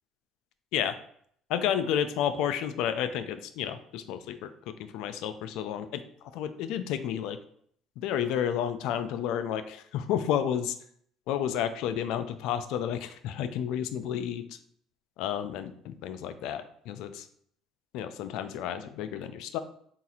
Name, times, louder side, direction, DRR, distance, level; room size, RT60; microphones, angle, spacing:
voice 1, 1.5-6.0 6.3-7.4 8.0-10.8 11.3-14.4 15.2-17.3 17.9-19.6, left 9 dB, 75° left, 10 dB, 0.4 m, -31 dB
3.8 x 2.4 x 4.2 m, 0.64 s
supercardioid pair, 80°, 0 cm